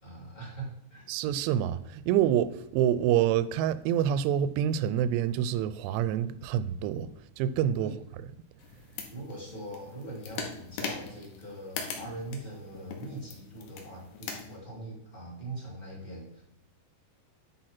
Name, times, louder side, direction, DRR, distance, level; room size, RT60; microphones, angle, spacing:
voice 1, 0.0-1.0 7.8-8.0 9.1-16.4, right 2 dB, 10° left, 2.4 m, -42 dB
voice 2, 1.1-7.1 7.4-7.9, right 10 dB, 85° right, 2.7 m, -27 dB
sound 1, 8.6-14.6, left 6 dB, 70° left, 3.1 m, -41 dB
10.5 x 4.7 x 5.8 m
omnidirectional pair, 5.0 m